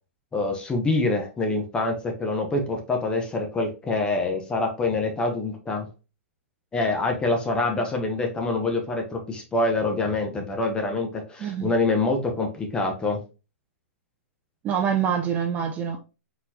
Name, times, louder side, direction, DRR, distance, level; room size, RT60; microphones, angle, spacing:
voice 1, 0.3-5.9 6.7-13.2, left 2 dB, 10° left, 0.8 m, -25 dB
voice 2, 11.4-11.7 14.6-16.0, right 8 dB, 20° right, 0.5 m, -25 dB
4.4 x 3.9 x 2.7 m
hypercardioid pair, 150°, 8 cm